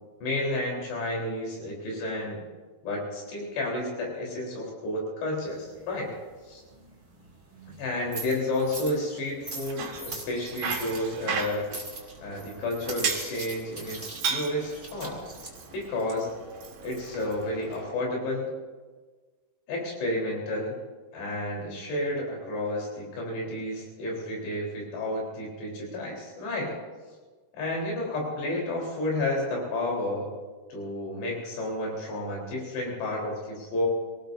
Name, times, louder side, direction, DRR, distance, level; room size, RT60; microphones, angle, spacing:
voice 1, 0.2-2.4 2.8-6.1 6.5-6.6 7.8-11.7 12.2-15.2 15.7-16.3 16.8-18.5 19.7-20.8 21.1-26.8 27.5-30.3 30.7-33.9, left 1 dB, 80° left, -2 dB, 6.0 m, -31 dB
sound 1, 5.4-17.5, right 2 dB, 20° right, 2.3 m, -43 dB
Bicycle, 9.5-17.8, right 6 dB, 65° right, 3.4 m, -36 dB
26.0 x 18.5 x 2.7 m, 1.4 s
omnidirectional pair, 4.8 m